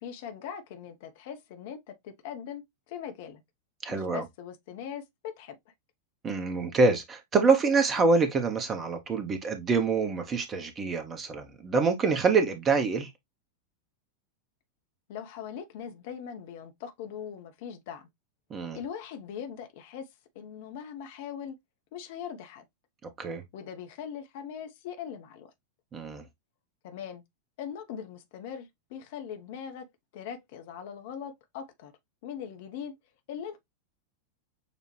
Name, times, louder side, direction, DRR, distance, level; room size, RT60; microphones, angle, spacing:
voice 1, 0.0-3.4 3.9-5.6 15.1-18.1 18.7-20.1 20.3-21.6 21.9-22.7 23.5-25.5 26.8-27.2 27.6-29.9 30.1-31.9 32.2-32.9 33.3-33.6, left 8 dB, 50° left, 0.8 m, -40 dB
voice 2, 3.8-4.2 6.2-13.1 18.5-18.8 23.2-23.4 25.9-26.2, right 4 dB, 25° right, 1.1 m, -26 dB
6.7 x 2.5 x 3.0 m
figure-of-eight pair, 90°, 0 cm